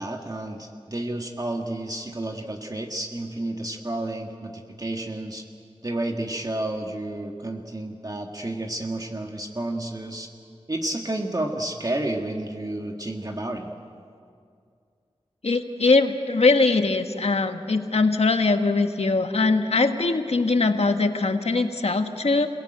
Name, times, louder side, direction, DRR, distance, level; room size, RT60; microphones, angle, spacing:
voice 1, 0.0-5.4 5.8-10.3 10.7-13.7, right 1 dB, 35° right, 2 dB, 1.8 m, -31 dB
voice 2, 15.4-22.5, left 3 dB, 70° left, 6 dB, 1.6 m, -21 dB
28.5 x 18.0 x 9.1 m, 2.3 s
wide cardioid pair, 60°, 11 cm